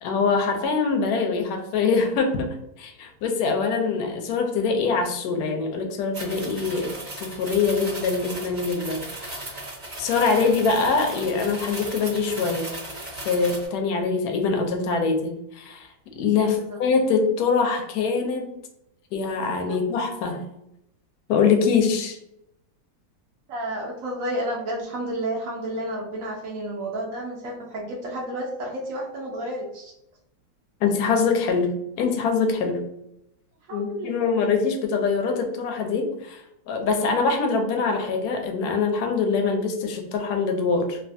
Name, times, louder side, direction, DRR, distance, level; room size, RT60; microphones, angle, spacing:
voice 1, 0.0-9.6 10.0-12.7 13.2-15.9 16.2-18.5 19.1-20.4 21.3-22.2 30.8-32.8 33.7-36.4 36.7-41.0, left 4 dB, 70° left, 4 dB, 0.9 m, -24 dB
sound 1, 6.1-13.7, right 2 dB, 35° right, 0.7 m, -36 dB
voice 2, 16.4-16.8 23.5-29.9 33.7-34.1, right 1 dB, 85° right, -2 dB, 0.7 m, -31 dB
3.2 x 2.4 x 2.6 m, 0.81 s
omnidirectional pair, 2.2 m